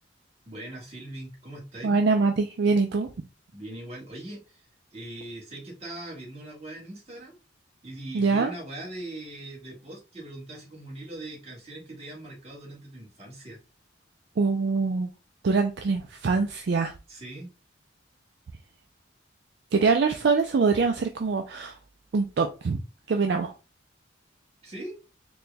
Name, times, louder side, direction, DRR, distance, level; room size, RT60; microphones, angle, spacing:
voice 1, 0.4-2.0 3.5-7.3 7.8-13.6 17.1-17.5 24.6-24.9, right 1 dB, 30° right, 1.4 m, -41 dB
voice 2, 1.8-3.1 8.1-8.5 14.4-15.1 15.4-16.9 19.7-21.8 22.1-22.8 23.1-23.5, right 4 dB, 55° right, 0.4 m, -24 dB
4.2 x 2.3 x 3.2 m
head